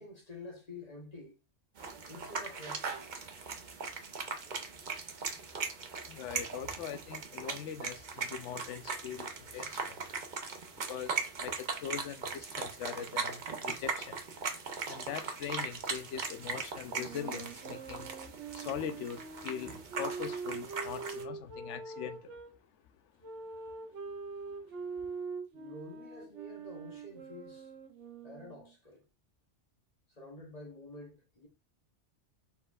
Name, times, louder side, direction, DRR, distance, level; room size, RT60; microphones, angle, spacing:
voice 1, 0.0-1.4 2.1-3.1 14.9-15.1 25.5-27.7 28.2-29.0 30.2-31.5, left 2 dB, 35° left, 1.0 m, -49 dB
sound 1, 1.8-21.2, right 4 dB, 45° right, 0.8 m, -39 dB
voice 2, 6.1-10.0 10.7-14.2 14.9-18.1 18.5-22.4, left 8 dB, 85° left, 0.9 m, -42 dB
sound 2, 16.9-22.5 23.2-28.7, right 4 dB, 85° right, 1.1 m, -43 dB
4.3 x 4.2 x 2.3 m
omnidirectional pair, 1.2 m